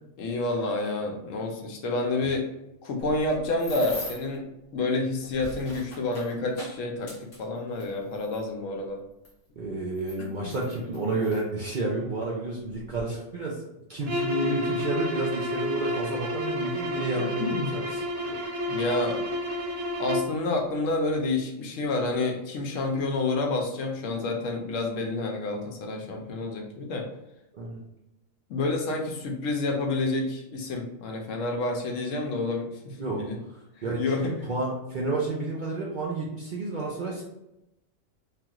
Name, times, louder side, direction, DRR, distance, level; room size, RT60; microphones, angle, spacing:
voice 1, 0.2-2.4 2.8-4.4 4.7-9.0 10.4-10.5 17.2-17.7 18.7-19.2 20.0-27.1 28.5-33.4 34.0-34.3, left 2 dB, 75° left, 1 dB, 1.0 m, -29 dB
sound 1, 3.0-4.4 5.1-8.4 9.3-9.4 9.9-11.4 12.2-12.3 12.7-13.0, left 1 dB, 55° left, 1.2 m, -41 dB
voice 2, 9.6-13.6 13.9-18.4 27.5-27.8 33.0-33.2 33.8-37.2, right 2 dB, 55° right, -4 dB, 0.5 m, -31 dB
sound 2, 14.0-20.4, left 1 dB, 75° right, 1.1 m, -30 dB
3.3 x 2.4 x 2.9 m, 0.88 s
omnidirectional pair, 1.4 m